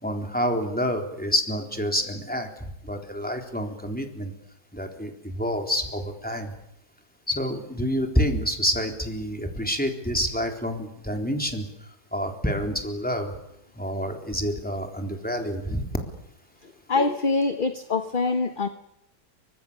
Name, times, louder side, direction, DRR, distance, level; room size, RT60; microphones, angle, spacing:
voice 1, 0.0-4.3 4.7-6.5 7.3-11.7 12.1-13.3 13.8-15.8, equal, 5° left, 3 dB, 3.8 m, -28 dB
voice 2, 16.6-18.7, left 3 dB, 35° left, 8 dB, 1.2 m, -25 dB
28.5 x 25.0 x 6.9 m, 0.79 s
omnidirectional pair, 1.8 m